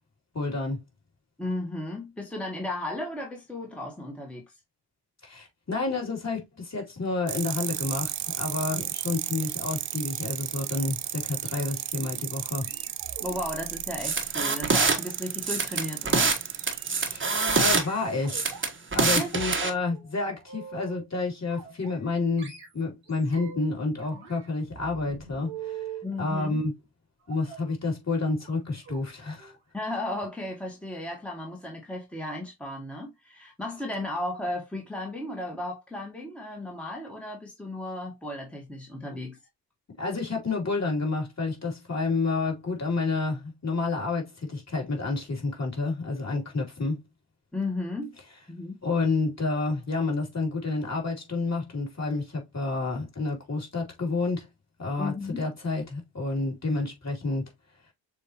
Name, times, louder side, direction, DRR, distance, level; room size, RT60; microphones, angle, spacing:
voice 1, 0.3-0.8 5.2-12.7 17.1-17.2 17.5-18.5 18.9-25.9 26.2-26.7 27.3-29.5 39.1-39.2 40.0-47.0 48.8-54.5 54.8-57.5, left 3 dB, 30° left, 3.0 m, -29 dB
voice 2, 1.4-4.5 8.7-8.8 13.2-16.4 19.0-19.3 26.0-26.6 29.7-39.4 47.5-48.1 48.5-48.8 55.0-55.4, left 1 dB, ahead, 1.6 m, -34 dB
sound 1, 7.3-17.2, right 12 dB, 40° right, 0.5 m, -34 dB
sound 2, 11.3-11.9 12.6-15.1 15.6-15.9 16.6-16.9 17.5-18.6 19.0-19.6 19.9-21.1 21.5-22.1 22.4-23.7 24.0-26.1 27.3-27.7 28.4-28.6 28.8-29.1 29.4-29.6 29.9-30.0, right 7 dB, 80° right, 1.9 m, -44 dB
sound 3, 14.0-15.0 15.4-16.4 16.7-17.8 18.3-19.7, right 4 dB, 25° right, 1.3 m, -24 dB
6.9 x 2.6 x 2.9 m
hypercardioid pair, 45°, 49 cm